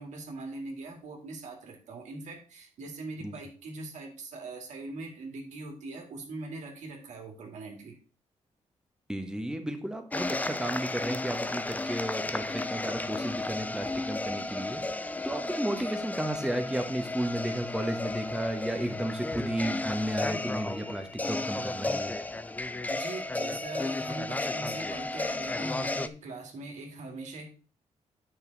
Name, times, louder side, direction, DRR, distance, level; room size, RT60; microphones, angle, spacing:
voice 1, 0.0-8.0 9.3-9.4 15.8-15.9 22.9-27.5, right 2 dB, 80° right, 2 dB, 2.4 m, -41 dB
voice 2, 9.1-22.2, right 1 dB, 5° right, 6 dB, 1.2 m, -33 dB
sound 1, 10.1-26.1, left 2 dB, 15° left, 0.4 m, -33 dB
9.1 x 6.0 x 4.0 m, 0.37 s
cardioid pair, 115°, 12 cm